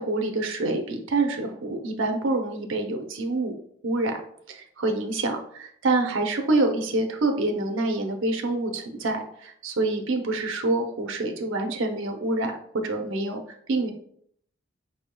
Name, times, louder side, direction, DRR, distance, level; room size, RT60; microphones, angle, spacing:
voice 1, 0.0-3.5 3.8-4.2 4.5-12.6 12.8-13.4 13.7-13.9, right 2 dB, 80° right, 5 dB, 0.6 m, -26 dB
5.0 x 3.4 x 2.2 m, 0.66 s
head